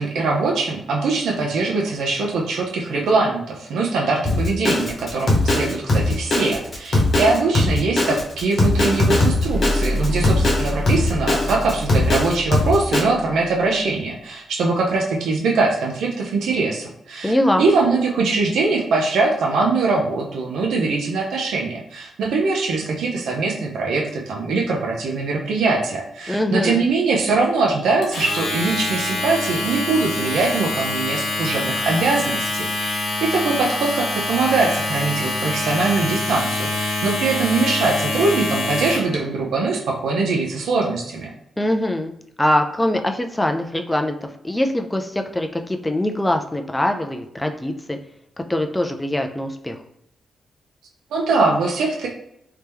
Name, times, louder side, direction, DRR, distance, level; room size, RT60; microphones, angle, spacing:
voice 1, 0.0-41.3 51.1-52.1, right 3 dB, 85° right, -1 dB, 0.7 m, -22 dB
Drum kit, 4.2-13.0, left 2 dB, 40° left, 1.0 m, -19 dB
sound 1, 9.5-13.7, left 1 dB, 55° right, 1.2 m, -27 dB
voice 2, 17.2-17.7 26.3-26.8 41.6-42.1 42.4-48.0 48.4-49.8, left 1 dB, 10° left, 5 dB, 0.3 m, -22 dB
Domestic sounds home sounds, 28.0-39.2, left 2 dB, 75° left, 1.1 m, -25 dB
3.3 x 2.9 x 3.4 m, 0.78 s
wide cardioid pair, 140°, 0 cm